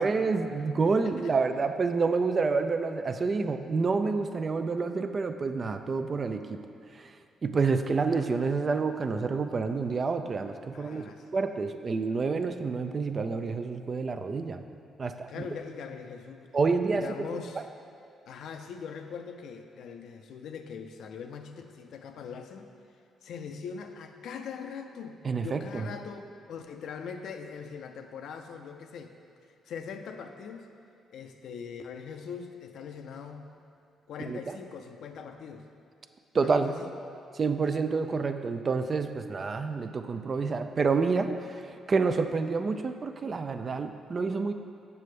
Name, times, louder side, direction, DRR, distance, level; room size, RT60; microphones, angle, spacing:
voice 1, 0.0-6.6 7.0-7.1 7.4-14.6 15.0-15.4 16.5-17.1 17.5-17.6 25.2-25.9 34.3-34.4 36.3-36.7 37.4-41.6 41.9-44.5, right 4 dB, 40° right, 8 dB, 0.4 m, -28 dB
voice 2, 1.0-1.3 10.7-11.3 15.3-16.4 16.9-17.7 18.3-22.7 23.2-25.2 25.4-29.1 29.7-30.7 31.1-33.5 34.1-35.7 36.3-36.9, left 6 dB, 75° left, 6 dB, 0.4 m, -41 dB
6.8 x 6.6 x 3.2 m, 2.4 s
cardioid pair, 90°, 0 cm